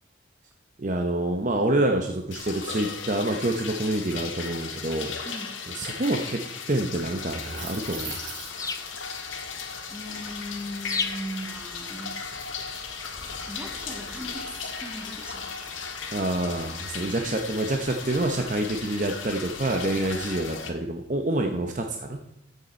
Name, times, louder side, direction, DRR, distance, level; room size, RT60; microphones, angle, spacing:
voice 1, 0.8-5.1 5.7-6.4 6.7-8.2 16.1-22.2, right 1 dB, 40° right, 4 dB, 0.8 m, -27 dB
sound 1, 2.3-20.7, left 5 dB, 85° left, 1.6 m, -37 dB
voice 2, 5.2-5.6 9.9-12.3 13.5-15.6 19.9-20.5 21.4-21.7, equal, 5° right, 4 dB, 1.3 m, -39 dB
sound 2, 7.0-20.4, left 4 dB, 15° left, 0.6 m, -42 dB
sound 3, 7.3-8.8, right 5 dB, 85° right, 3.3 m, -39 dB
14.5 x 6.7 x 4.4 m, 0.85 s
head